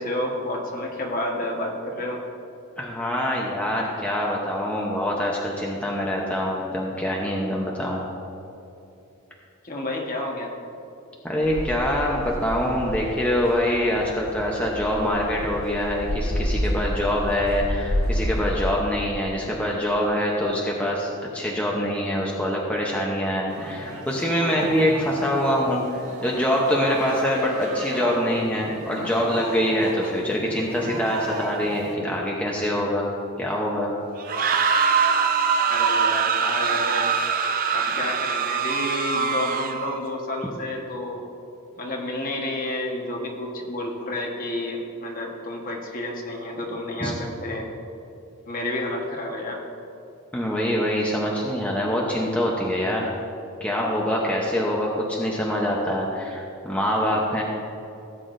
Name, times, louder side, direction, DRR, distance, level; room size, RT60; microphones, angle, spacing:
voice 1, 0.0-2.2 9.6-10.5 35.7-37.1 37.7-41.2 41.8-47.7 48.5-49.6, left 1 dB, 40° left, 0 dB, 1.3 m, -30 dB
voice 2, 2.8-8.0 11.2-33.1 33.4-33.9 47.0-47.1 50.3-53.1 53.6-57.4, equal, 5° left, -3 dB, 0.8 m, -24 dB
sound 1, 11.4-18.7, equal, 65° left, 1.1 m, -29 dB
sound 2, 23.5-32.0, right 1 dB, 90° right, 1.8 m, -35 dB
sound 3, 34.2-40.0, right 6 dB, 40° right, 0.5 m, -23 dB
16.5 x 8.4 x 2.6 m, 2.9 s
head